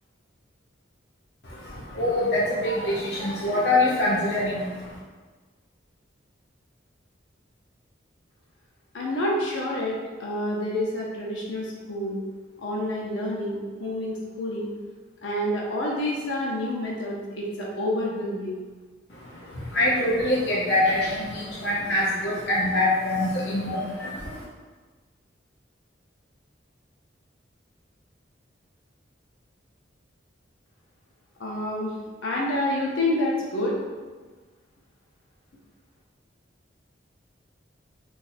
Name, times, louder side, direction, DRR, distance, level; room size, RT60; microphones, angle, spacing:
voice 1, 1.4-5.0 19.1-24.4, left 1 dB, 55° left, -6 dB, 0.6 m, -25 dB
voice 2, 8.9-12.2 12.6-14.7 15.2-18.5 31.4-31.9 32.2-33.7, left 1 dB, 85° left, -3 dB, 0.8 m, -28 dB
4.1 x 2.6 x 2.6 m, 1.3 s
head